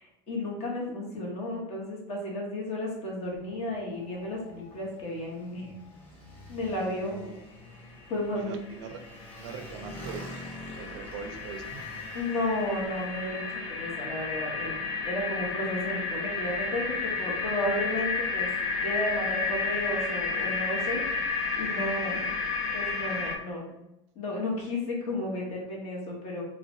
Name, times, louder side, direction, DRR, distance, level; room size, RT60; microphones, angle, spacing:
voice 1, 0.0-5.7 6.5-7.1 8.1-8.5 12.1-18.5 18.8-22.3 22.7-23.7 24.1-26.4, left 1 dB, 45° left, -2 dB, 1.0 m, -33 dB
Motorcycle, 3.3-14.0, equal, 10° left, 0.8 m, -47 dB
voice 2, 6.8-7.6 8.4-9.0 9.4-10.4 10.8-11.8, right 6 dB, 75° right, 7 dB, 0.4 m, -42 dB
sound 1, 8.4-8.5 8.7-23.4, left 4 dB, 65° left, 0.5 m, -32 dB
3.1 x 2.1 x 2.5 m, 0.88 s
supercardioid pair, 130°, 15 cm